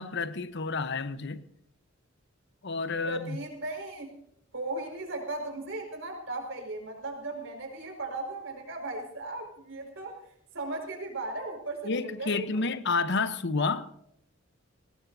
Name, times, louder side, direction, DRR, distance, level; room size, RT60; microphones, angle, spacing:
voice 1, 0.0-1.4 2.6-3.4 11.8-13.9, left 4 dB, 60° left, 0.9 m, -30 dB
voice 2, 3.0-4.1 4.5-10.2 10.5-12.6, right 2 dB, 70° right, 5.2 m, -37 dB
22.0 x 18.5 x 2.7 m
head